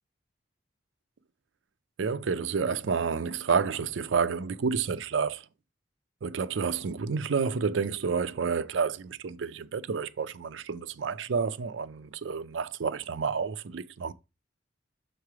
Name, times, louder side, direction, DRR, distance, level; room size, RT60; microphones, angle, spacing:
voice 1, 2.0-5.4 6.2-14.1, right 5 dB, 90° right, 0.5 m, -29 dB
6.6 x 3.2 x 4.7 m
head